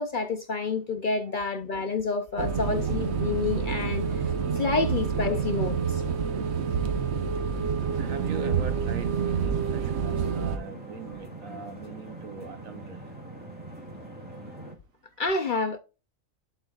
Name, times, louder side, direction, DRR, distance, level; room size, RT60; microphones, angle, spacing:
voice 1, 0.0-4.0 4.5-6.0 15.2-15.8, left 4 dB, 50° left, 0.6 m, -28 dB
sound 1, 2.4-10.6, right 6 dB, 60° right, 1.0 m, -28 dB
sound 2, 7.8-14.8, right 2 dB, 5° right, 2.4 m, -42 dB
voice 2, 8.0-13.0, right 6 dB, 80° right, 1.3 m, -41 dB
11.5 x 4.5 x 2.4 m
omnidirectional pair, 1.4 m